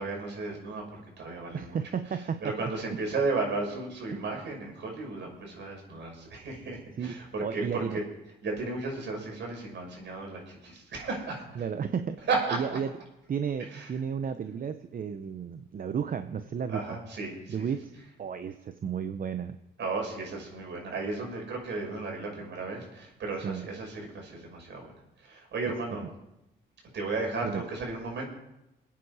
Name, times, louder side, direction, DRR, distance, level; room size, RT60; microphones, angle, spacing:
voice 1, 0.0-1.8 2.4-8.0 8.4-11.4 12.3-12.8 13.7-13.9 16.7-17.7 19.8-24.9 25.2-26.0 26.9-28.2, right 3 dB, 65° right, 0 dB, 6.1 m, -34 dB
voice 2, 1.5-2.7 4.1-4.2 7.0-7.2 7.4-8.0 11.6-12.2 12.5-12.9 13.3-16.8 17.5-17.9 18.2-19.6 23.4-23.6 25.7-25.8 27.4-27.6, right 7 dB, 45° right, 9 dB, 0.8 m, -33 dB
25.0 x 9.3 x 4.9 m, 0.89 s
cardioid pair, 90°, 20 cm